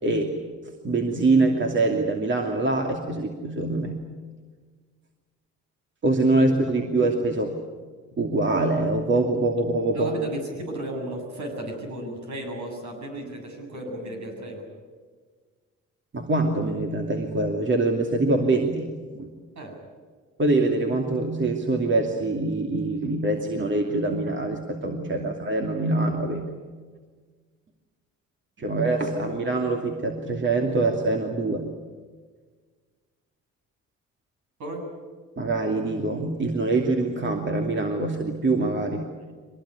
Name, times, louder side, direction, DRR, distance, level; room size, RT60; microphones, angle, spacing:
voice 1, 0.0-0.4 0.8-4.1 6.0-7.6 8.2-10.1 16.1-19.3 20.4-26.5 28.6-31.7 35.4-39.1, right 2 dB, 40° right, 2 dB, 2.7 m, -24 dB
voice 2, 9.9-14.7 19.6-19.8 25.2-25.5 34.6-34.9, right 1 dB, 70° right, 3 dB, 7.8 m, -34 dB
23.5 x 19.5 x 9.7 m, 1.5 s
cardioid pair, 90°, 30 cm